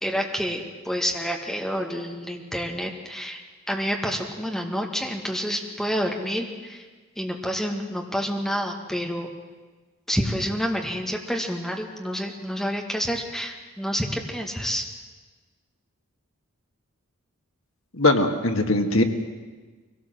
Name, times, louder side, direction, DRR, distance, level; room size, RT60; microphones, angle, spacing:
voice 1, 0.0-3.4 3.7-6.8 7.2-9.3 10.1-14.9, equal, ahead, 1 dB, 1.9 m, -28 dB
voice 2, 17.9-19.0, left 2 dB, 70° left, 5 dB, 1.7 m, -20 dB
23.0 x 17.5 x 7.7 m, 1.3 s
head